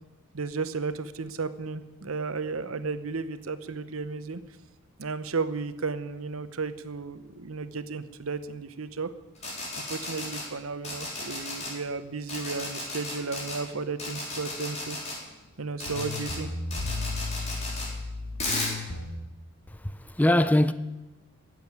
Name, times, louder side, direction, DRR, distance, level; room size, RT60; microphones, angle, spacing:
voice 1, 0.3-4.4 5.0-9.1 9.8-15.0 15.6-16.5, right 4 dB, 75° right, 0.9 m, -34 dB
sound 1, 9.4-10.4 10.8-11.7 12.3-13.6 14.0-15.2 15.8-16.4 16.7-17.9 18.4-18.7, left 2 dB, 30° left, 4.2 m, -34 dB
sound 2, 15.5-15.6 15.8-19.1, left 3 dB, 85° left, 2.0 m, -34 dB
voice 2, 19.7-20.7, left 1 dB, 5° left, 0.4 m, -22 dB
16.0 x 7.7 x 9.5 m
head